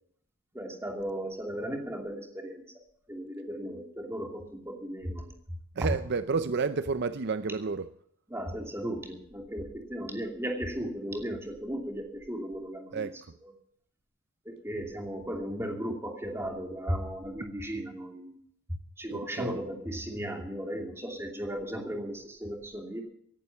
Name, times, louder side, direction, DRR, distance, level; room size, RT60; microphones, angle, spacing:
voice 1, 0.5-2.6 3.1-5.3 5.8-5.9 8.3-13.1 14.4-18.4 19.0-23.0, equal, 10° right, 2 dB, 2.7 m, -36 dB
voice 2, 5.7-7.9 12.9-13.3 19.1-19.7, right 4 dB, 50° right, 12 dB, 0.5 m, -31 dB
17.5 x 11.0 x 5.9 m, 0.69 s
head